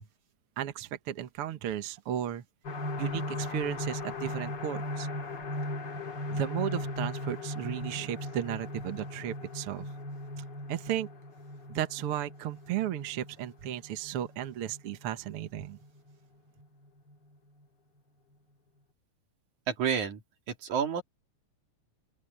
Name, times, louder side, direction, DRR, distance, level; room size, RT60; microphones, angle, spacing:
voice 1, 0.6-2.4 3.0-5.1 6.3-9.9 10.4-11.1 11.7-15.8, right 11 dB, 55° right, 1.8 m, -35 dB
sound 1, 2.6-16.1 16.6-16.7 17.1-17.2, left 1 dB, 40° left, 2.5 m, -38 dB
voice 2, 19.7-20.2 20.6-21.0, right 7 dB, 75° right, 3.8 m, -29 dB
open air
omnidirectional pair, 3.4 m